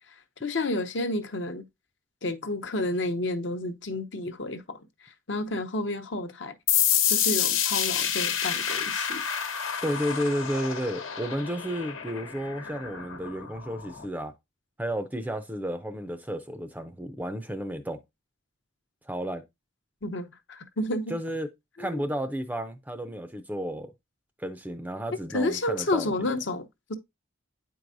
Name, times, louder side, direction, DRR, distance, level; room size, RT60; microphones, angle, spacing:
voice 1, 0.4-1.6 2.2-6.5 7.1-9.2 20.0-21.2 21.8-22.0 25.3-26.9, left 2 dB, 60° left, 0.8 m, -30 dB
sound 1, 6.7-14.1, left 9 dB, 80° left, 1.1 m, -28 dB
voice 2, 9.8-14.3 14.8-18.0 19.0-19.4 21.1-21.5 21.8-23.9 24.4-26.3, equal, 10° right, 0.5 m, -32 dB
9.0 x 4.6 x 2.5 m
head